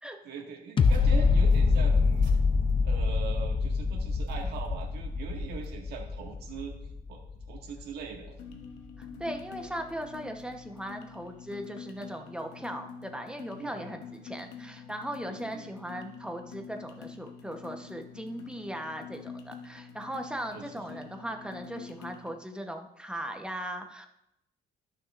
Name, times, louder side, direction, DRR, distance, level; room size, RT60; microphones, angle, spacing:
voice 1, 0.2-2.3 2.8-6.7 7.1-7.2 7.5-8.3 13.5-14.0 15.3-15.7 20.5-21.0, right 6 dB, 70° right, 1 dB, 1.8 m, -41 dB
sound 1, 0.8-7.8 8.3-8.4, left 4 dB, 30° left, 0.6 m, -25 dB
sound 2, 0.8-5.7, right 4 dB, 55° right, 2.8 m, -39 dB
sound 3, 8.4-22.4, left 6 dB, 85° left, 1.0 m, -46 dB
voice 2, 9.0-24.1, right 1 dB, 5° right, 4 dB, 1.0 m, -38 dB
13.5 x 6.3 x 2.5 m, 0.81 s
cardioid pair, 110°, 17 cm